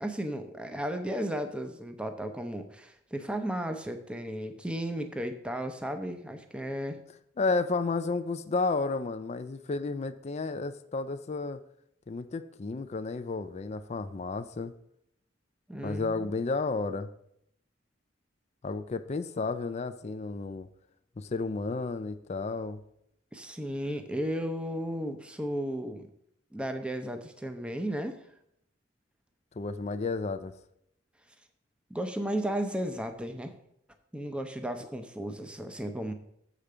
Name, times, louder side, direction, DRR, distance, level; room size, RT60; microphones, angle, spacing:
voice 1, 0.0-7.0 15.7-16.3 23.3-26.1 26.5-28.2 31.9-33.5 34.1-36.1, equal, 5° right, 6 dB, 0.6 m, -34 dB
voice 2, 7.4-11.6 12.1-14.7 15.8-17.1 18.6-20.7 21.2-22.8 29.6-30.5, left 3 dB, 35° left, 10 dB, 0.4 m, -32 dB
7.2 x 5.0 x 6.7 m, 0.73 s
head